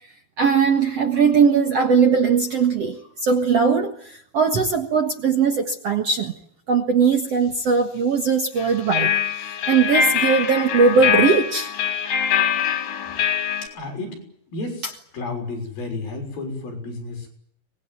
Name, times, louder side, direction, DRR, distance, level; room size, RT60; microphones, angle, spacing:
voice 1, 0.4-6.3 6.7-11.7, right 5 dB, 50° right, 5 dB, 2.1 m, -20 dB
sound 1, 8.6-13.7, left 8 dB, 90° left, 5.0 m, -23 dB
voice 2, 13.7-14.2 14.5-14.9 15.1-17.3, left 3 dB, 65° left, 3 dB, 8.0 m, -31 dB
24.5 x 21.0 x 9.3 m, 0.67 s
omnidirectional pair, 4.6 m